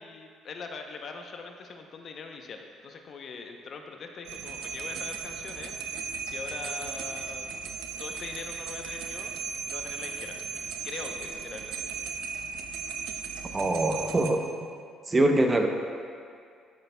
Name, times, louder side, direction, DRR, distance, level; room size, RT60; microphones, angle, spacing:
voice 1, 0.0-7.5 8.0-9.4 9.6-10.4 10.8-11.9, left 4 dB, 55° left, 4 dB, 0.7 m, -42 dB
sound 1, 4.3-14.3, right 5 dB, 80° right, 0.5 m, -36 dB
voice 2, 13.5-14.4 15.1-15.7, right 2 dB, 25° right, 4 dB, 0.7 m, -23 dB
12.5 x 6.6 x 2.2 m, 2.2 s
cardioid pair, 90°, 0 cm